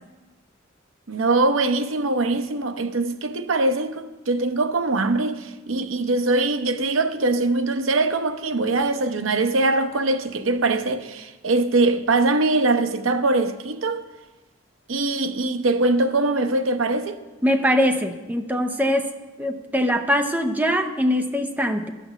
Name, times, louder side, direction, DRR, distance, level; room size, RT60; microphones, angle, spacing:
voice 1, 1.1-14.0 14.9-17.2, right 2 dB, 85° right, 0.8 m, -22 dB
voice 2, 17.4-19.1 19.4-21.9, equal, 10° right, 0.6 m, -22 dB
12.0 x 6.1 x 7.0 m
head